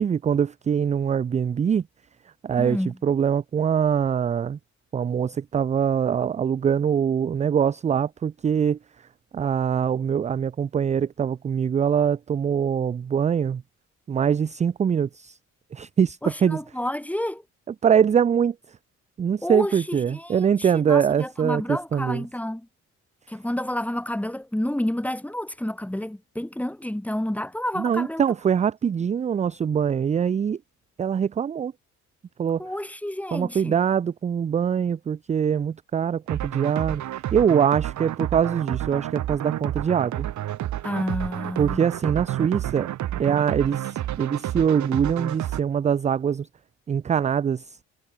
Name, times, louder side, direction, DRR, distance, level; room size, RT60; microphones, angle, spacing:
voice 1, 0.0-1.8 2.4-4.6 4.9-8.8 9.3-13.6 14.1-15.4 15.7-16.6 17.8-18.5 19.2-22.3 27.8-30.6 31.0-31.7 32.4-32.7 33.3-37.0 37.3-40.3 41.6-42.9 43.2-46.5 46.9-47.7, right 7 dB, 25° right, 0.3 m, -23 dB
voice 2, 2.6-3.0 16.2-17.4 19.4-22.7 23.3-28.2 32.6-33.8 40.8-41.9, left 1 dB, 5° left, 3.0 m, -30 dB
sound 1, 36.3-45.6, right 12 dB, 70° right, 1.7 m, -30 dB
cardioid pair, 90°, 30 cm